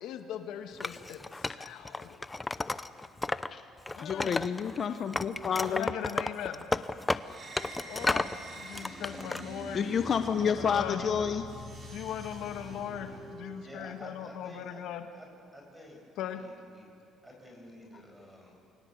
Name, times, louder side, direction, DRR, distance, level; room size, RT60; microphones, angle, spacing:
voice 1, 0.0-2.3 3.9-4.4 5.7-6.6 7.9-8.3 8.6-9.9 10.3-11.1 11.9-15.1 16.2-16.4, left 9 dB, 75° left, 6 dB, 1.7 m, -39 dB
Wood, 0.8-3.5 3.8-4.8 5.1-8.4 8.7-9.4, left 2 dB, 15° left, 0.8 m, -33 dB
voice 2, 4.0-5.9 9.7-11.4, left 7 dB, 45° left, 8 dB, 1.1 m, -29 dB
sound 1, 7.2-13.8, right 1 dB, 35° right, 5.1 m, -45 dB
voice 3, 13.6-14.8 15.1-15.3 15.5-16.0 16.3-16.9 17.2-18.5, equal, 10° right, 1 dB, 7.7 m, -50 dB
29.0 x 22.0 x 8.1 m, 2.5 s
cardioid pair, 110°, 0 cm